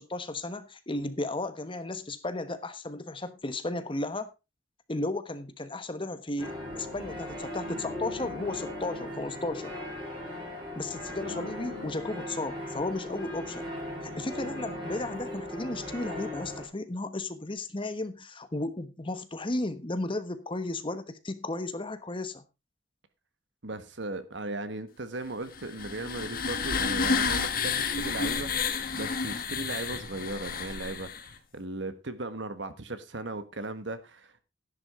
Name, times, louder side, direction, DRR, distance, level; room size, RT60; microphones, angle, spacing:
voice 1, 0.0-4.3 4.9-9.7 10.7-13.7 14.0-22.4, left 2 dB, 25° left, 1.1 m, -34 dB
sound 1, 6.4-16.6, left 1 dB, 25° right, 5.6 m, -38 dB
voice 2, 23.6-34.4, right 2 dB, 65° right, 1.5 m, -37 dB
sound 2, 25.5-31.3, left 5 dB, 50° left, 1.4 m, -30 dB
11.5 x 11.0 x 3.7 m
head